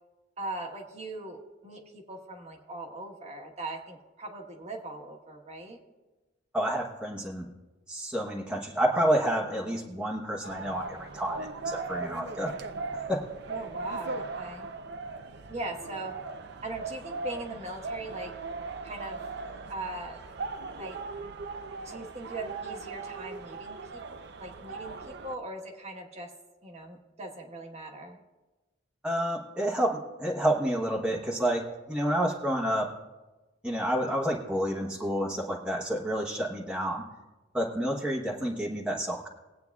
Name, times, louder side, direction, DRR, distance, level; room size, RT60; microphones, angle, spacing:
voice 1, 0.4-5.8 13.5-14.7 15.5-16.1 16.6-18.3 18.8-19.2 19.7-20.2 20.8-21.0 21.8-24.0 24.4-26.3 26.6-28.2, right 2 dB, 35° right, 2 dB, 1.3 m, -40 dB
voice 2, 6.5-7.5 7.9-12.5 13.1-13.2 29.0-32.9 33.6-37.0 37.5-39.3, right 1 dB, 5° right, -2 dB, 1.0 m, -29 dB
sound 1, 10.4-25.4, right 3 dB, 60° right, 0.6 m, -39 dB
21.0 x 8.6 x 2.3 m, 1.2 s
head